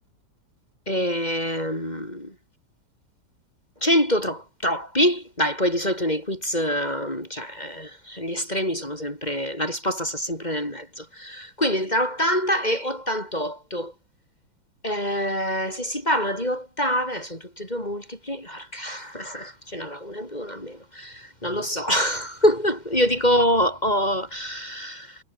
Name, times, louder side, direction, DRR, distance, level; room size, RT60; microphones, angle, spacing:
voice 1, 0.9-2.3 3.8-13.9 14.8-25.2, equal, 20° left, 6.5 m, -25 dB
omnidirectional pair, 2.0 m